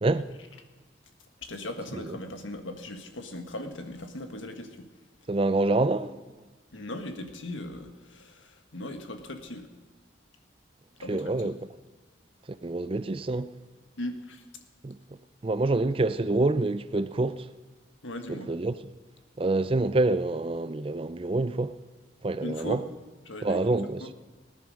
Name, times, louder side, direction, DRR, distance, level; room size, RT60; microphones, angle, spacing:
voice 1, 0.0-0.3 1.9-2.2 5.3-6.2 11.1-11.7 12.6-13.5 14.8-15.0 15.4-17.5 18.3-18.8 19.4-21.8 22.2-22.8 23.4-24.1, right 2 dB, 30° right, 0.4 m, -27 dB
voice 2, 1.4-4.9 6.7-9.7 11.0-11.4 14.0-14.4 18.0-18.5 22.4-22.9 23.3-23.6 24.0-24.1, left 1 dB, 90° left, 1.6 m, -38 dB
19.0 x 10.0 x 6.4 m
head